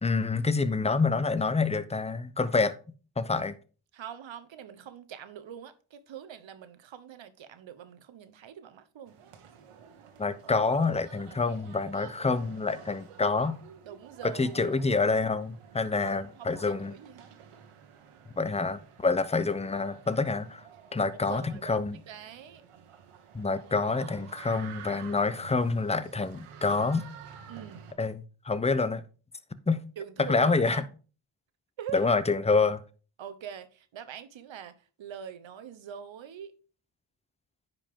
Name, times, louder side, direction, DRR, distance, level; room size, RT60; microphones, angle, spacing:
voice 1, 0.0-2.8 3.2-3.6 10.2-13.6 14.2-16.9 18.4-20.6 20.9-22.0 23.3-27.1 28.0-29.0 29.7-29.8 30.2-30.8 31.9-32.8, left 4 dB, 15° left, 0.6 m, -27 dB
voice 2, 3.9-9.1 13.8-14.8 16.0-17.3 21.2-22.6 27.5-27.8 30.0-30.8 31.8-32.1 33.2-36.5, right 9 dB, 65° right, 1.1 m, -43 dB
sound 1, 9.1-27.9, right 7 dB, 85° right, 1.4 m, -50 dB
9.8 x 5.2 x 3.6 m
cardioid pair, 80°, 50 cm